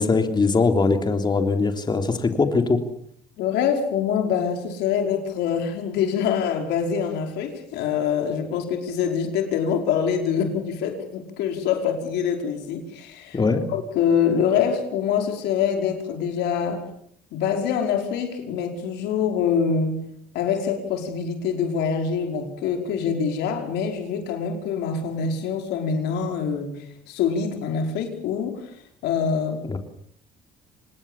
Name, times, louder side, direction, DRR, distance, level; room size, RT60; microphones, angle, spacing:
voice 1, 0.0-2.8 13.3-13.6 29.7-29.8, left 4 dB, 25° left, 6 dB, 3.4 m, -21 dB
voice 2, 3.4-13.4 13.7-16.8 17.3-20.0 20.3-28.7 29.0-29.6, left 7 dB, 85° left, 4 dB, 5.3 m, -25 dB
26.0 x 20.0 x 7.3 m, 0.67 s
cardioid pair, 110°, 17 cm